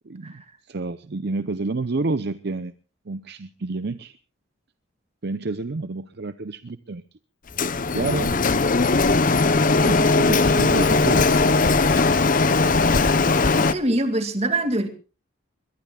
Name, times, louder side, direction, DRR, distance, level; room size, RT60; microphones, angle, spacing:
voice 1, 0.0-2.7 3.1-4.2 5.2-7.0 7.9-8.4 9.7-11.3, right 3 dB, 55° right, 12 dB, 0.7 m, -29 dB
Printer, 7.6-13.7, left 3 dB, 40° left, 0.8 m, -19 dB
voice 2, 13.6-14.9, right 1 dB, 30° right, 7 dB, 2.3 m, -24 dB
22.0 x 22.0 x 2.3 m, 0.34 s
head